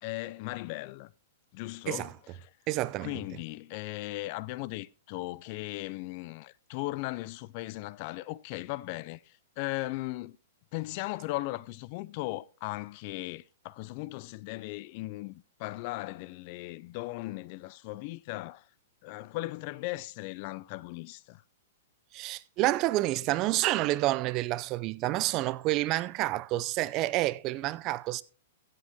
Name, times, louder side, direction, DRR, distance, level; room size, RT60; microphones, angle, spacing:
voice 1, 0.0-1.1 1.5-2.1 2.4-2.5 3.0-10.4 10.7-18.7 19.0-21.4, left 19 dB, 45° left, 0.5 m, -37 dB
voice 2, 2.7-3.1 22.1-28.2, right 17 dB, 35° right, 0.5 m, -29 dB
15.5 x 7.8 x 3.5 m
hypercardioid pair, 130°, 0 cm